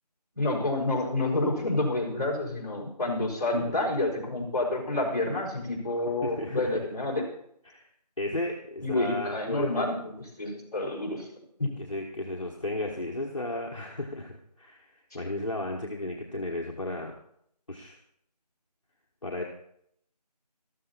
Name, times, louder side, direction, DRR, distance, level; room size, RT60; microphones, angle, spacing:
voice 1, 0.3-7.2 8.8-11.3 11.6-11.7, left 2 dB, 25° left, -6 dB, 4.5 m, -29 dB
voice 2, 6.2-6.8 7.6-7.8 8.2-9.9 11.8-14.9 15.1-17.1 17.7-18.0 19.2-19.4, left 2 dB, 50° left, -1 dB, 1.7 m, -34 dB
14.0 x 13.5 x 4.1 m, 0.69 s
figure-of-eight pair, 175°, 21 cm